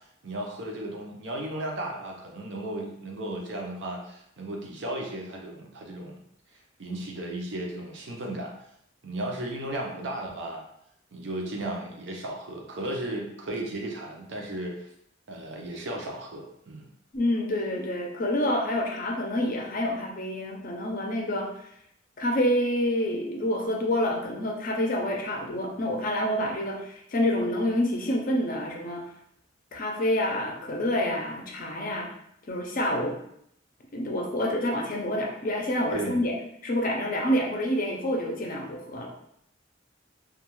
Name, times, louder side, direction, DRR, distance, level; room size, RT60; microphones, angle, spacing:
voice 1, 0.2-6.2 6.8-8.5 9.0-10.6 11.1-14.9 15.3-16.9 35.9-36.2, right 1 dB, 65° right, 0 dB, 0.6 m, -35 dB
voice 2, 17.1-21.7 22.2-29.0 29.7-32.1 32.5-33.2 33.9-36.3 36.6-39.1, left 1 dB, 45° left, 1 dB, 0.5 m, -27 dB
2.3 x 2.3 x 3.0 m, 0.74 s
head